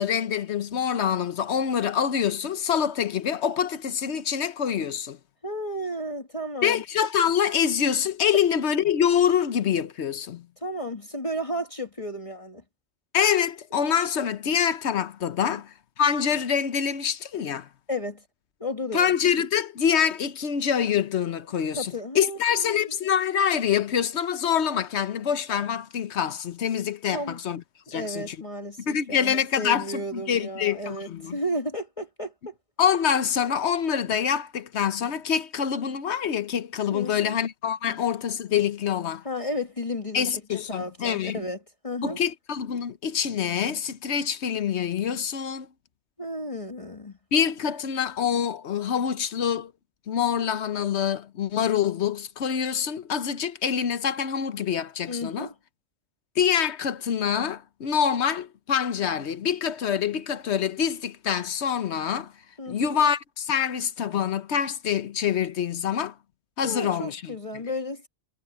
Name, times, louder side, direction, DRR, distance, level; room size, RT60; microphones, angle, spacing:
voice 1, 0.0-5.2 6.6-10.5 13.1-17.7 18.9-27.6 27.9-28.4 28.8-31.4 32.8-39.2 40.1-41.4 42.0-45.7 47.3-49.7 50.1-55.5 56.4-62.3 62.7-66.1 66.6-67.3, left 8 dB, 75° left, 1.2 m, -25 dB
voice 2, 5.4-6.8 10.6-12.6 15.5-15.6 17.9-18.2 18.6-19.1 21.7-22.8 27.1-27.4 27.9-32.5 36.9-37.4 37.9-38.0 39.2-40.3 40.7-41.6 41.8-42.2 46.2-47.2 55.1-55.5 62.6-63.0 66.6-68.1, equal, 30° left, 2.0 m, -33 dB
omnidirectional pair, 1.1 m